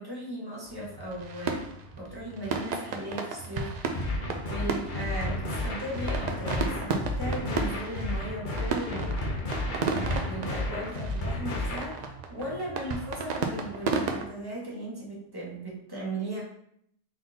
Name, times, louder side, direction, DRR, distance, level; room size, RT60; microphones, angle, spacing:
voice 1, 0.0-1.6 2.0-16.4, right 1 dB, 20° right, -5 dB, 1.1 m, -37 dB
sound 1, 0.7-14.3, right 4 dB, 75° right, 0.4 m, -34 dB
sound 2, 4.0-12.0, left 1 dB, 45° left, 0.8 m, -32 dB
3.9 x 3.7 x 2.7 m, 0.71 s
omnidirectional pair, 1.3 m